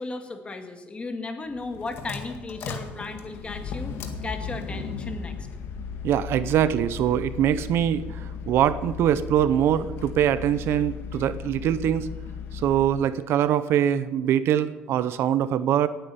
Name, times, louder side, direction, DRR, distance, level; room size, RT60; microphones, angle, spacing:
voice 1, 0.0-5.3, left 3 dB, 25° left, 6 dB, 2.1 m, -35 dB
sound 1, 1.5-13.0, left 6 dB, 65° left, 1.9 m, -36 dB
voice 2, 6.0-12.1 12.5-15.9, right 10 dB, 65° right, 14 dB, 0.7 m, -23 dB
18.0 x 9.0 x 7.0 m, 1.2 s
cardioid pair, 110°, 5 cm